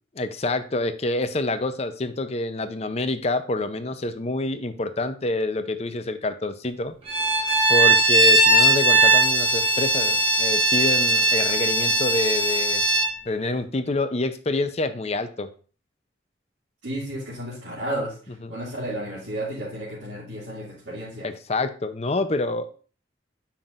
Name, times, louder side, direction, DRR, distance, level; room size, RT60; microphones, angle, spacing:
voice 1, 0.2-6.9 7.7-12.8 13.3-15.5 21.2-22.7, left 2 dB, 35° left, 10 dB, 0.6 m, -27 dB
Bowed string instrument, 7.1-13.1, right 2 dB, 30° right, 1.3 m, -19 dB
voice 2, 16.8-21.3, right 1 dB, 75° right, -9 dB, 2.5 m, -32 dB
8.9 x 5.7 x 2.5 m, 0.39 s
head